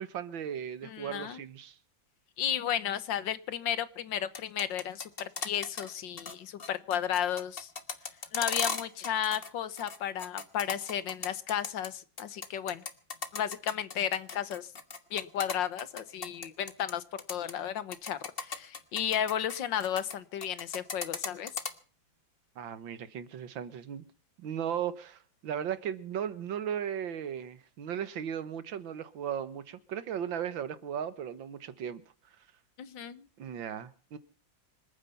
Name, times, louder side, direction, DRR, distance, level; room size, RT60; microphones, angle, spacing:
voice 1, 0.0-1.8 22.6-24.1 24.4-32.0 33.4-34.2, right 9 dB, 85° right, 2.0 m, -36 dB
voice 2, 0.8-1.4 2.4-7.7 8.3-12.8 13.3-14.7 15.1-17.0 17.3-21.5 32.8-33.3, left 9 dB, 75° left, 1.7 m, -33 dB
sound 1, 4.2-5.9 6.2-6.3 6.6-9.5 9.8-11.9 12.2-16.9 17.2-17.5 17.9-20.2 20.4-21.7, left 4 dB, 35° left, 1.4 m, -36 dB
26.0 x 9.4 x 5.7 m
omnidirectional pair, 2.1 m